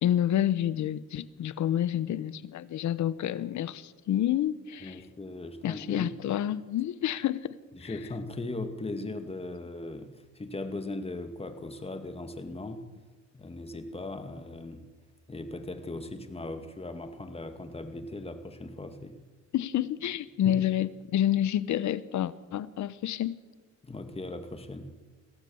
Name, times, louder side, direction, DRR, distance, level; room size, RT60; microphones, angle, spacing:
voice 1, 0.0-5.0 5.6-7.6 7.8-7.9 19.5-23.4, left 11 dB, 70° left, 1.1 m, -29 dB
voice 2, 4.8-6.1 7.7-12.8 13.3-14.9 15.3-19.2 20.4-20.6 23.8-25.0, left 2 dB, 20° left, 2.2 m, -38 dB
23.0 x 16.5 x 7.2 m
cardioid pair, 90°, 30 cm